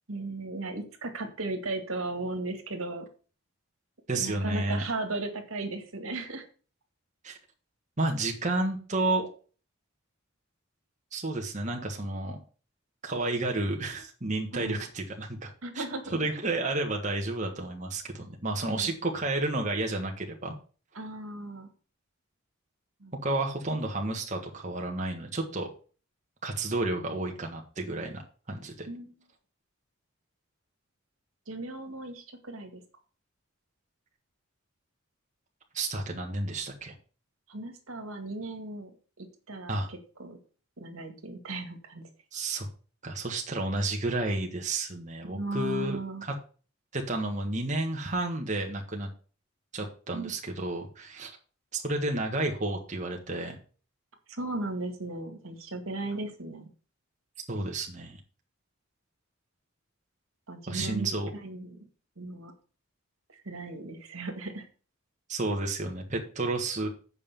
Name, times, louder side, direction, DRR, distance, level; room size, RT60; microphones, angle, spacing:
voice 1, 0.1-3.1 4.2-6.5 14.5-14.8 15.6-16.2 18.6-18.9 21.0-21.7 23.0-23.1 28.9-29.1 31.5-32.8 37.5-38.9 39.2-40.4 40.8-42.0 45.3-46.2 50.1-50.3 54.4-56.7 60.5-61.1 61.3-61.9 62.2-62.5 63.5-64.6, right 2 dB, 75° right, 5 dB, 2.0 m, -36 dB
voice 2, 4.1-4.8 7.2-7.4 8.0-9.3 11.1-12.4 13.0-20.5 23.2-25.7 26.4-28.2 28.5-28.9 35.7-36.9 39.7-39.9 42.3-42.7 43.0-46.3 46.9-49.1 49.7-51.3 51.7-53.6 57.5-58.2 60.7-61.3 65.3-66.9, right 2 dB, 35° right, 1 dB, 1.5 m, -31 dB
8.3 x 5.5 x 6.9 m, 0.38 s
head